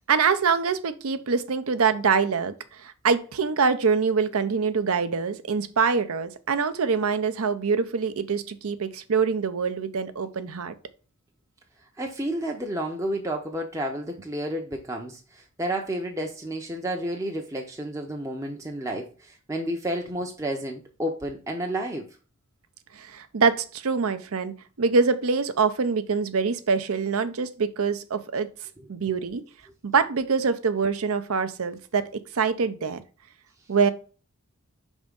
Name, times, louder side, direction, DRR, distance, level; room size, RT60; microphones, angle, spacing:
voice 1, 0.1-10.7 22.9-28.5 28.9-29.4 29.8-32.1 32.3-33.0 33.7-33.9, right 5 dB, 75° right, 0.6 m, -24 dB
voice 2, 12.0-22.1, right 1 dB, 15° right, 0.5 m, -31 dB
5.3 x 3.6 x 5.1 m
head